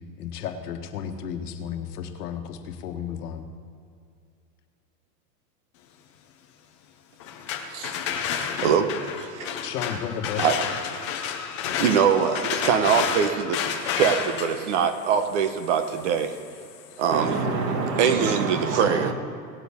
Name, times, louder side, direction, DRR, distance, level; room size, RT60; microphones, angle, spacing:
voice 1, 0.2-3.5 9.6-10.5, left 8 dB, 65° left, 5 dB, 1.4 m, -33 dB
sound 1, 7.2-17.0, left 8 dB, 20° left, 0.4 m, -31 dB
voice 2, 7.7-8.0 8.6-8.9 9.2-9.6 10.4-10.5 11.1-11.2 11.8-13.6 13.9-16.3 17.0-17.3 18.0-19.1, right 7 dB, 45° right, 9 dB, 1.0 m, -23 dB
voice 3, 17.1-19.1, right 4 dB, 70° right, 4 dB, 2.1 m, -27 dB
18.5 x 8.4 x 3.6 m, 2.3 s
supercardioid pair, 160°, 49 cm